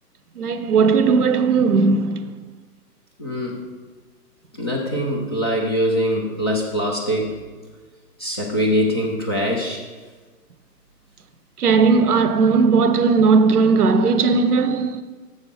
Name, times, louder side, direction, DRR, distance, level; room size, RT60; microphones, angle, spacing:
voice 1, 0.4-2.4 11.6-15.0, right 4 dB, 70° right, 0.8 m, -17 dB
voice 2, 3.2-3.6 4.5-7.3 8.2-9.8, equal, 15° left, 0.5 m, -23 dB
7.1 x 6.4 x 5.2 m
figure-of-eight pair, 125°, 48 cm